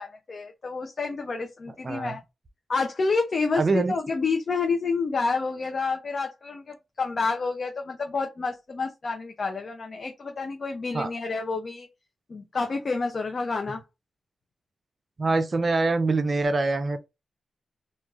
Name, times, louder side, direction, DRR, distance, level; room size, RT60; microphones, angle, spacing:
voice 1, 0.0-2.2 2.7-11.9 12.3-13.8, left 4 dB, 55° left, 0.6 m, -29 dB
voice 2, 1.8-2.2 3.6-3.9 10.9-11.1 15.2-17.1, right 3 dB, 50° right, 0.5 m, -24 dB
3.1 x 2.4 x 2.4 m
supercardioid pair, 45°, 0 cm